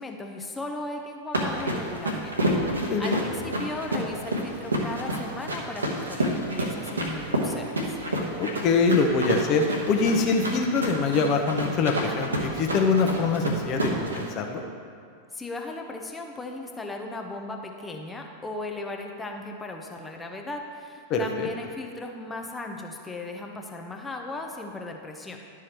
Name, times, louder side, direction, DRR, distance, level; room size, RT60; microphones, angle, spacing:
voice 1, 0.0-8.0 15.3-25.4, left 2 dB, 10° left, 2 dB, 0.7 m, -37 dB
sound 1, 1.3-14.3, right 1 dB, 75° right, 1.1 m, -29 dB
voice 2, 2.7-3.2 8.4-14.6 21.1-21.5, left 4 dB, 35° left, 3 dB, 0.9 m, -24 dB
11.5 x 4.9 x 4.4 m, 2.4 s
figure-of-eight pair, 90°, 0 cm